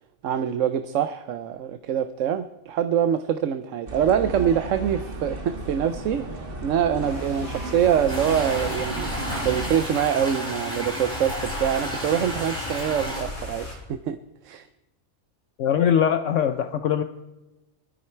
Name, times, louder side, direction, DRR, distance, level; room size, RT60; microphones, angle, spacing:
voice 1, 0.2-9.1 9.4-14.2 14.4-14.7, right 9 dB, 70° right, 11 dB, 1.0 m, -25 dB
sound 1, 3.9-9.7, right 2 dB, 40° right, 1.7 m, -34 dB
sound 2, 6.8-13.8, left 2 dB, 90° left, 4.6 m, -38 dB
sound 3, 8.1-13.2, equal, 5° left, 6.7 m, -32 dB
voice 2, 15.6-17.0, left 8 dB, 65° left, 9 dB, 1.0 m, -21 dB
21.0 x 13.0 x 4.5 m, 1.0 s
omnidirectional pair, 1.4 m